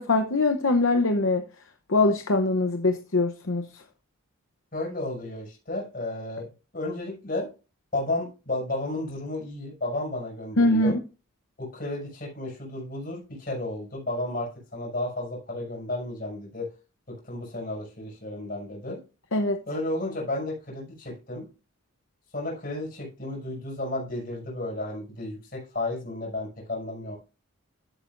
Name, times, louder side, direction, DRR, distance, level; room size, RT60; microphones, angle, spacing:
voice 1, 0.0-1.4 1.9-3.8 10.6-10.9 19.3-19.6, left 2 dB, 65° left, 7 dB, 0.8 m, -23 dB
voice 2, 4.7-6.5 6.7-7.5 7.9-10.9 11.6-16.7 17.1-19.0 19.7-21.5 22.3-27.2, left 2 dB, 40° left, -1 dB, 6.7 m, -33 dB
14.0 x 8.4 x 2.6 m, 0.33 s
head